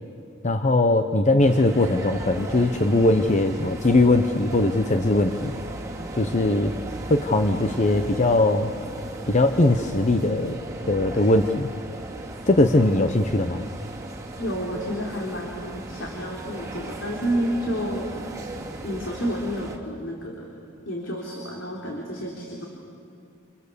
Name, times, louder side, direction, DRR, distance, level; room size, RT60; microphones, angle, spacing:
voice 1, 0.4-5.5 6.2-6.7 7.1-8.7 9.3-10.6 10.9-11.7 12.5-13.6, left 2 dB, 35° left, 7 dB, 0.8 m, -20 dB
sound 1, 1.4-19.8, right 1 dB, 15° right, 2.6 m, -36 dB
voice 2, 14.4-18.1 18.8-20.5 20.8-22.7, equal, 65° left, -2 dB, 3.5 m, -30 dB
30.0 x 28.5 x 6.9 m, 2.4 s
head